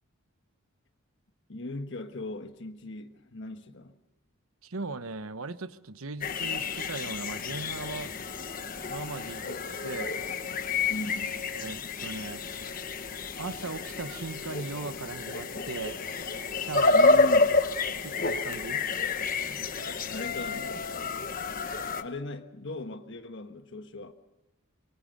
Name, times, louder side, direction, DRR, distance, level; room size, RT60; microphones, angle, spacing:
voice 1, 1.5-3.9 10.9-11.4 16.9-17.6 19.5-19.6 20.1-20.7 22.0-24.1, left 2 dB, 55° left, 1.4 m, -38 dB
voice 2, 4.6-8.1 8.9-10.2 11.5-12.5 13.4-16.0 16.6-17.0 18.0-18.8, right 3 dB, 80° right, 1.1 m, -38 dB
sound 1, 6.2-22.0, left 3 dB, 40° left, 1.2 m, -29 dB
sound 2, 7.5-14.2 14.5-14.6 14.8-14.9 15.7-15.8 16.0-17.2, right 1 dB, 15° right, 6.2 m, -58 dB
24.5 x 23.5 x 6.6 m
head